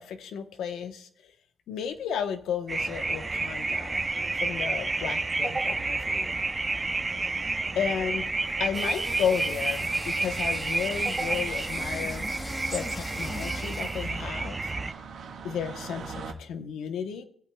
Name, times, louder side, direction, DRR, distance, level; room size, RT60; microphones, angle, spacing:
voice 1, 0.0-1.3 1.7-4.0 4.3-6.3 7.7-8.3 8.6-12.3 12.7-14.7 15.4-17.2, left 7 dB, 75° left, 8 dB, 1.0 m, -33 dB
sound 1, 2.2-2.7 3.6-4.0 4.9-5.0 5.2-5.3 5.5-5.6 6.0-6.3 6.7-6.9 7.2-16.3, right 5 dB, 65° right, 1.5 m, -46 dB
sound 2, 2.7-14.9, right 3 dB, 25° right, 0.6 m, -30 dB
sound 3, 8.7-14.2, left 2 dB, 25° left, 0.9 m, -41 dB
19.0 x 8.4 x 2.3 m, 0.65 s
cardioid pair, 90°, 0 cm